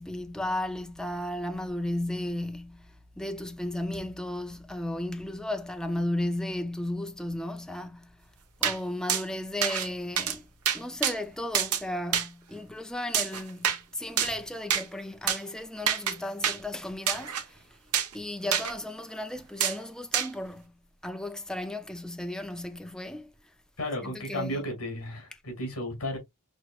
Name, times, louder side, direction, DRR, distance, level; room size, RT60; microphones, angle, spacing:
voice 1, 0.0-8.3 8.6-10.5 10.7-17.8 18.1-23.5 24.0-24.6, left 1 dB, 5° left, 0.4 m, -35 dB
sound 1, 8.6-8.8 9.1-9.2 9.6-9.9 10.2-10.4 10.7-11.2 11.5-11.8 12.1-12.3 13.1-13.8 14.2-14.4 14.7-14.8 15.3-15.4 15.9-16.2 16.4-16.6 17.1-17.4 17.9-18.1 18.5-18.7 19.6-19.8 20.1-20.3, right 9 dB, 90° right, 0.9 m, -26 dB
voice 2, 23.8-26.2, left 1 dB, 65° left, 2.4 m, -33 dB
6.1 x 3.0 x 2.3 m
head